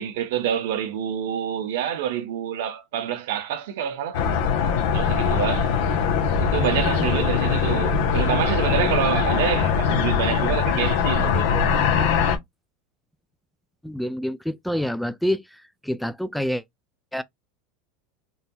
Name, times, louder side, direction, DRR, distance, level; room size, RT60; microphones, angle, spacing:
voice 1, 0.0-4.2 4.9-5.7 6.4-11.7, right 9 dB, 80° right, 0.9 m, -27 dB
sound 1, 4.1-12.4, left 6 dB, 75° left, 1.1 m, -22 dB
voice 2, 6.6-7.2 13.8-16.6 17.1-17.2, equal, ahead, 0.3 m, -28 dB
3.9 x 2.8 x 2.3 m
supercardioid pair, 140°, 0 cm